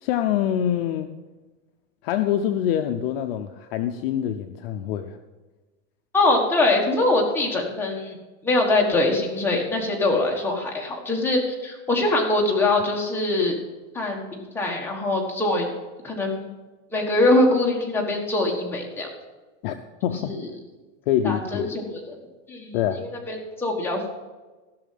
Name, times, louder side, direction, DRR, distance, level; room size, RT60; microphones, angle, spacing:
voice 1, 0.0-1.1 2.0-5.2 19.6-19.8 20.0-20.3 21.1-21.7 22.7-23.1, left 10 dB, 45° left, 7 dB, 0.6 m, -25 dB
voice 2, 6.1-8.2 8.4-13.5 13.9-14.3 14.5-15.6 16.0-16.5 16.9-19.1 20.1-20.5 21.2-22.0 22.5-24.1, left 2 dB, 5° left, -1 dB, 1.5 m, -23 dB
15.5 x 6.2 x 5.8 m, 1.2 s
supercardioid pair, 165°, 39 cm